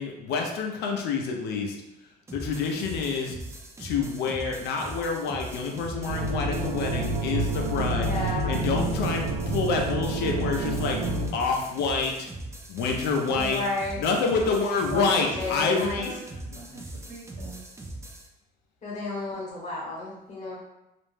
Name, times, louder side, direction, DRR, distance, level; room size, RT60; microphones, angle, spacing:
voice 1, 0.0-1.8 2.3-3.4 3.8-12.3 12.7-13.6 14.0-16.1 16.5-16.7, left 4 dB, 80° left, 2 dB, 0.5 m, -28 dB
sound 1, 2.3-18.3, right 2 dB, 15° right, 0.4 m, -41 dB
sound 2, 6.1-11.3, right 2 dB, 85° right, 0.4 m, -28 dB
voice 2, 8.0-8.6 13.3-14.0 14.9-16.0 18.8-20.6, left 2 dB, 45° left, -4 dB, 1.0 m, -32 dB
voice 3, 14.9-15.3 15.6-16.3 16.5-17.7, right 2 dB, 65° right, -5 dB, 1.1 m, -42 dB
2.4 x 2.1 x 3.1 m, 0.93 s
cardioid pair, 110°, 17 cm